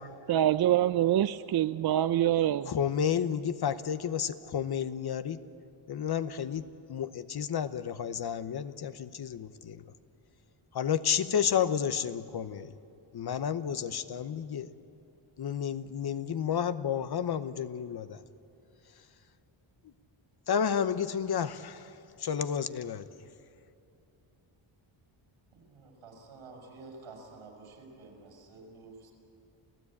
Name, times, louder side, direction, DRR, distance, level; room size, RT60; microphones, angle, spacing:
voice 1, 0.3-2.7, right 12 dB, 50° right, 0.5 m, -25 dB
voice 2, 2.7-5.4 5.9-9.9 10.7-12.7 13.1-14.7 15.4-18.2 20.5-23.1, left 8 dB, 50° left, 0.9 m, -31 dB
voice 3, 25.5-29.1, right 3 dB, 85° right, 5.8 m, -50 dB
29.0 x 15.5 x 8.6 m
cardioid pair, 115°, 49 cm